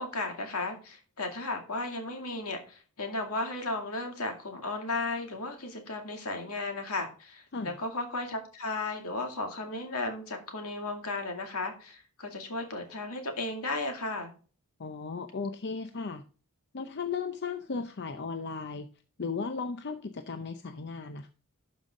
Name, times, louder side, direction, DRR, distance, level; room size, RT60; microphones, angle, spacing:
voice 1, 0.0-14.3, left 2 dB, 75° left, 4 dB, 2.3 m, -35 dB
voice 2, 14.8-16.2 16.7-18.9 19.2-21.3, left 4 dB, 50° left, 8 dB, 0.6 m, -36 dB
12.0 x 5.5 x 3.7 m, 0.38 s
head